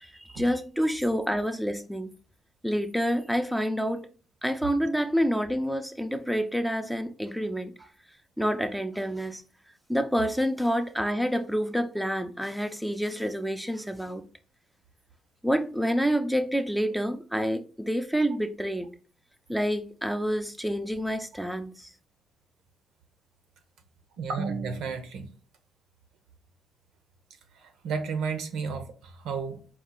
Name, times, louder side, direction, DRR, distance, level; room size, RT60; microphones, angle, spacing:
voice 1, 0.0-2.1 2.6-4.1 4.4-7.7 8.4-9.4 9.9-14.2 15.4-18.9 19.5-21.9, equal, ahead, 0.4 m, -28 dB
voice 2, 24.2-25.3 27.5-29.7, right 5 dB, 85° right, 0.7 m, -32 dB
4.5 x 2.4 x 3.7 m
cardioid pair, 90°, 0 cm